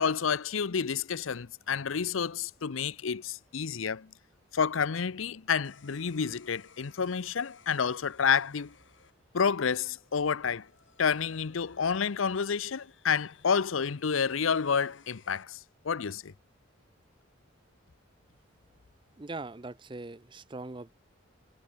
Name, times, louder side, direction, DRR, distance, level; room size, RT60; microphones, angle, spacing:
voice 1, 0.0-4.1 4.5-8.7 9.3-10.7 11.0-15.6 15.8-16.3, left 6 dB, 85° left, 0.7 m, -29 dB
sound 1, 5.6-15.4, left 6 dB, 70° left, 5.6 m, -61 dB
voice 2, 19.2-20.9, right 2 dB, 25° right, 0.6 m, -41 dB
head